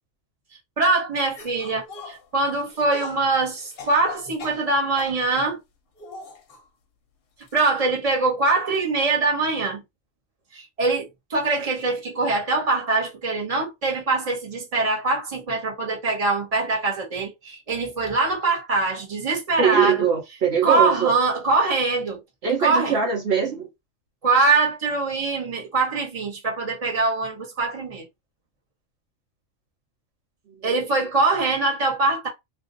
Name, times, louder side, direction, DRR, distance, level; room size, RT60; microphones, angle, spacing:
voice 1, 0.8-5.6 7.5-9.8 10.5-20.1 20.6-22.2 22.6-23.0 24.2-28.1 30.6-32.3, right 3 dB, 30° right, 1.1 m, -23 dB
sound 1, 1.3-5.2 6.0-6.6 7.4-7.7 8.0-8.1 9.0-9.1, left 4 dB, 55° left, 0.8 m, -41 dB
voice 2, 19.6-21.1 22.4-23.7 30.7-30.8, right 7 dB, 60° right, 1.0 m, -22 dB
2.5 x 2.4 x 3.7 m
omnidirectional pair, 1.3 m